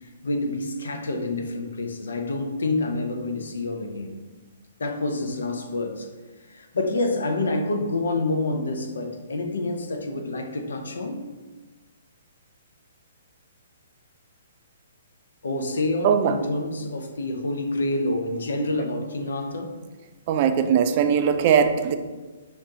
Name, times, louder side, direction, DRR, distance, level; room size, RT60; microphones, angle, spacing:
voice 1, 0.0-4.2 4.8-6.1 6.5-11.2 15.4-19.7, left 2 dB, 70° left, 5 dB, 0.6 m, -28 dB
voice 2, 20.3-22.0, right 7 dB, 40° right, 8 dB, 0.4 m, -20 dB
6.2 x 2.6 x 2.8 m, 1.3 s
figure-of-eight pair, 125°, 0 cm